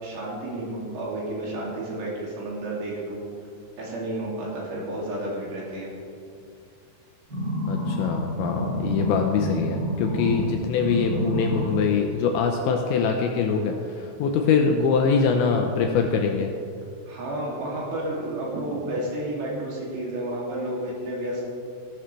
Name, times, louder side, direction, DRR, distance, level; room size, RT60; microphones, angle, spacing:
voice 1, 0.0-3.2 3.8-5.9 17.1-21.5, right 1 dB, 65° right, -5 dB, 4.5 m, -31 dB
sound 1, 7.3-10.5 10.8-11.8 12.3-12.4, equal, 30° right, 1.9 m, -28 dB
voice 2, 7.7-16.5, left 5 dB, 85° left, 3 dB, 2.7 m, -23 dB
15.0 x 12.5 x 3.3 m, 2.4 s
omnidirectional pair, 5.8 m